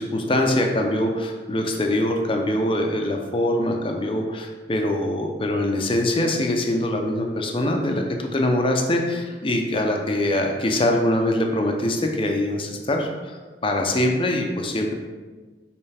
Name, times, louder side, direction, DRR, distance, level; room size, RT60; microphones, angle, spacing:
voice 1, 0.0-13.4 13.6-14.9, left 1 dB, 30° left, 2 dB, 0.7 m, -23 dB
5.6 x 5.1 x 3.4 m, 1.3 s
head